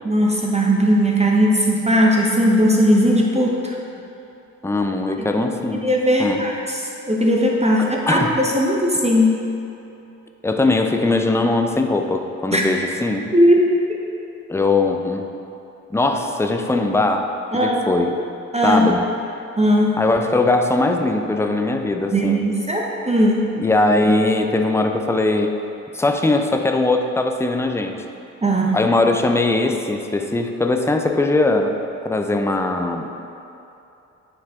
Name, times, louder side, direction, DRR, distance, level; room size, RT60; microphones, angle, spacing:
voice 1, 0.0-3.8 5.3-5.4 5.7-6.8 7.1-9.4 12.5-12.6 13.3-13.8 17.5-17.9 18.5-18.9 19.6-20.0 22.1-23.5 28.4-28.8, equal, 15° right, -1 dB, 0.9 m, -18 dB
voice 2, 4.6-5.8 6.2-6.4 7.8-8.3 10.4-13.2 14.5-15.2 15.9-18.1 18.6-19.1 20.0-22.5 23.6-25.5 25.9-28.0 28.7-31.7 32.0-33.2, left 2 dB, 5° left, 4 dB, 0.6 m, -20 dB
9.5 x 4.8 x 3.6 m, 2.8 s
hypercardioid pair, 40°, 39 cm